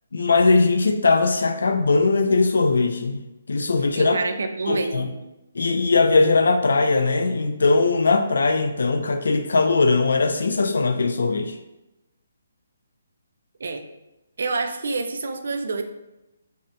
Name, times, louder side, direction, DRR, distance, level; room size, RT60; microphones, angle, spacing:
voice 1, 0.1-3.2 3.5-4.2 4.7-5.1 5.5-11.6, left 3 dB, 80° left, 7 dB, 0.3 m, -20 dB
voice 2, 4.0-5.1 13.6-13.9 14.4-15.8, right 3 dB, 65° right, 6 dB, 0.3 m, -27 dB
2.7 x 2.1 x 2.5 m, 0.97 s
hypercardioid pair, 170°, 0 cm